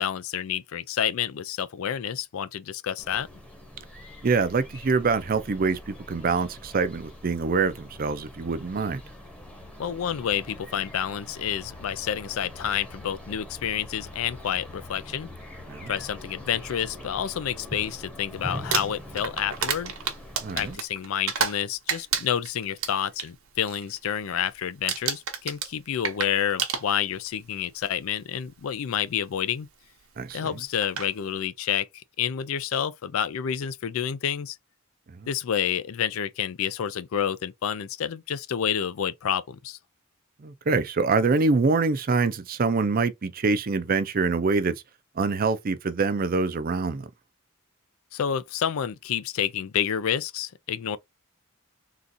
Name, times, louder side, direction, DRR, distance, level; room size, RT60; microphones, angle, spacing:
voice 1, 0.0-3.3 9.8-15.3 15.9-19.9 20.5-29.7 30.3-34.6 35.3-39.8 48.1-51.0, left 9 dB, 70° left, 0.4 m, -29 dB
sound 1, 3.0-20.7, left 1 dB, 5° left, 0.9 m, -43 dB
voice 2, 4.2-9.0 15.7-15.9 20.4-20.8 30.2-30.6 35.1-35.3 40.4-44.8 45.2-47.1, right 4 dB, 40° right, 0.4 m, -25 dB
Crumpling crinkling, 18.5-21.6 21.9-23.3 23.7-24.0 24.2-24.6 24.9-27.3 28.2-28.3 30.3-30.4 30.8-31.1, right 7 dB, 70° right, 0.8 m, -30 dB
3.8 x 2.4 x 2.6 m
head